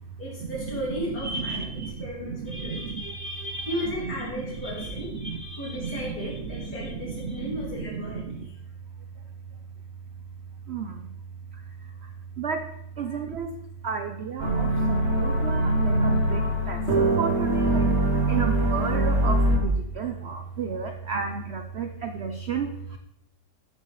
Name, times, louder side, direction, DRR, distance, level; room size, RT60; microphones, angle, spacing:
voice 1, 0.2-1.7 2.0-2.8 3.7-5.1 5.6-8.2 13.1-13.2, equal, 65° left, -7 dB, 4.3 m, -34 dB
voice 2, 1.1-8.5 10.7-11.1 12.4-12.6 13.0-13.5 13.8-17.9 18.3-23.0, right 5 dB, 70° right, 6 dB, 0.6 m, -33 dB
sound 1, 14.4-19.6, right 1 dB, 40° right, 1.4 m, -23 dB
13.0 x 6.8 x 3.2 m, 0.81 s
omnidirectional pair, 1.9 m